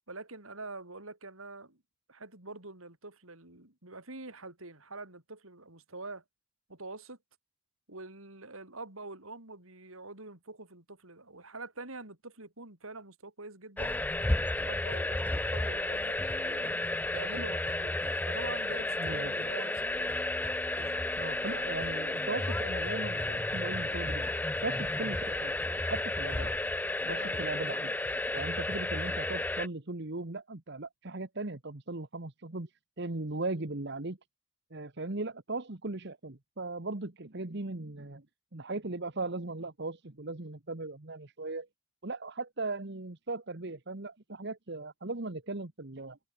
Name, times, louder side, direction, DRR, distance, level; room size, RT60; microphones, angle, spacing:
voice 1, 0.1-1.8 2.1-6.2 6.7-7.2 7.9-13.9 14.6-16.7 17.1-20.2 20.8-21.0 26.4-26.5 27.0-27.4, right 2 dB, 90° right, 5.9 m, -45 dB
sound 1, 13.8-29.7, left 2 dB, 10° left, 0.4 m, -32 dB
voice 2, 19.0-19.4 21.2-24.3 24.6-25.6 25.9-26.5 27.1-28.0 28.3-32.7 33.0-34.2 34.7-38.2 38.5-41.7 42.0-46.2, right 2 dB, 55° right, 1.5 m, -38 dB
head